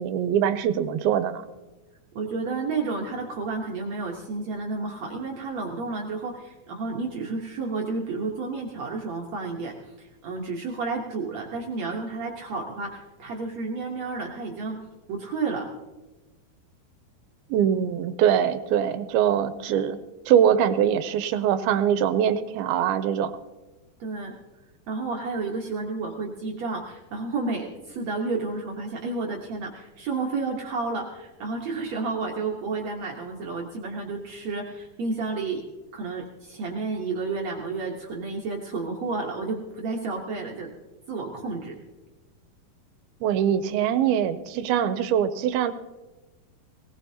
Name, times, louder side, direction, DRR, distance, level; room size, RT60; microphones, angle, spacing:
voice 1, 0.0-1.4 17.5-20.0 20.3-23.3 43.2-45.7, right 9 dB, 85° right, 11 dB, 2.4 m, -23 dB
voice 2, 2.2-14.8 15.1-15.7 24.0-24.3 24.9-35.6 35.9-40.7 41.1-41.7, right 3 dB, 60° right, 0 dB, 1.9 m, -31 dB
19.5 x 19.0 x 2.8 m, 1.1 s
omnidirectional pair, 4.5 m